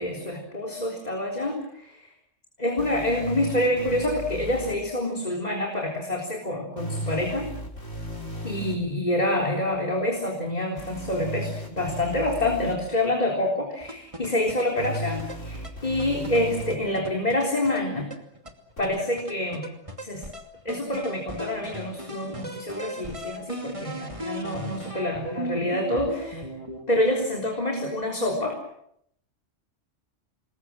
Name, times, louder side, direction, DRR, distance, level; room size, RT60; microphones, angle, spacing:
voice 1, 0.0-2.1 2.6-7.5 8.4-18.1 18.8-19.7 20.0-20.2 20.7-26.4 26.9-28.6, left 1 dB, 35° left, 1 dB, 4.0 m, -27 dB
sound 1, 2.8-4.7 6.8-8.8 10.8-12.7 14.8-16.8 18.8-18.9, equal, 80° left, 5.5 m, -35 dB
sound 2, 13.8-26.8, right 1 dB, 25° right, 2.8 m, -38 dB
28.0 x 21.5 x 7.5 m, 0.74 s
omnidirectional pair, 1.3 m